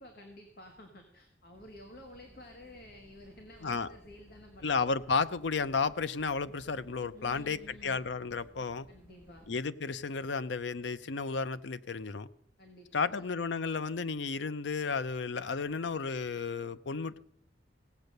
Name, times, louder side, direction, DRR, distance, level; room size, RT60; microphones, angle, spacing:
voice 1, 0.0-4.7 7.1-8.0 8.9-9.5 12.6-13.3, left 1 dB, 55° left, 3 dB, 1.7 m, -52 dB
sound 1, 1.5-9.6, right 1 dB, 10° right, 2.1 m, -59 dB
voice 2, 4.6-8.9 9.5-12.3 12.9-17.2, left 4 dB, 90° left, 14 dB, 0.6 m, -33 dB
16.5 x 8.1 x 6.6 m, 0.68 s
head